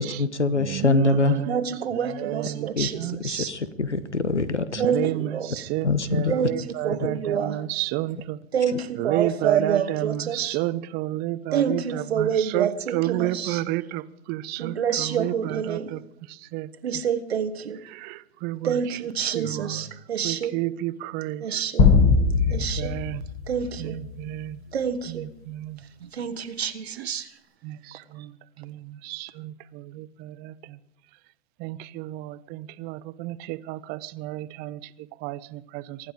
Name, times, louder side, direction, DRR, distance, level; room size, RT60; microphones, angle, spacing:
voice 1, 0.0-1.4 2.7-2.9 3.2-4.9 5.8-6.3, left 3 dB, 85° left, 1.1 m, -24 dB
voice 2, 0.6-1.6 2.0-3.2 4.8-8.4 9.0-14.0 14.3-16.0 16.5-16.7 17.9-18.8 19.3-19.9 20.2-21.6 22.5-23.2 23.8-24.6 25.1-25.8 27.0-27.1 27.6-28.3 28.6-30.5 31.6-34.8 35.2-36.0, right 16 dB, 30° right, 0.6 m, -31 dB
voice 3, 1.5-3.5 4.8-5.6 6.3-7.6 8.5-10.6 11.5-13.6 14.6-16.0 16.8-17.8 18.6-20.6 21.4-21.9 22.5-23.0 23.5-24.0 24.7-25.3 26.0-27.3, right 7 dB, 65° right, 1.1 m, -27 dB
sound 1, 21.8-24.3, left 4 dB, 40° left, 5.0 m, -21 dB
24.0 x 11.5 x 5.0 m
figure-of-eight pair, 100°, 34 cm